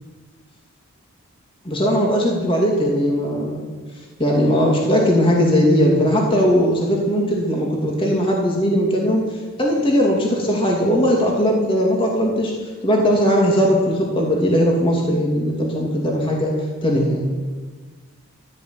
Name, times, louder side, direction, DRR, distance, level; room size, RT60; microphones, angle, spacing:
voice 1, 1.6-3.8 4.2-9.2 9.6-12.5 12.8-17.3, equal, 25° left, -1 dB, 2.8 m, -19 dB
13.5 x 10.5 x 9.6 m, 1.4 s
head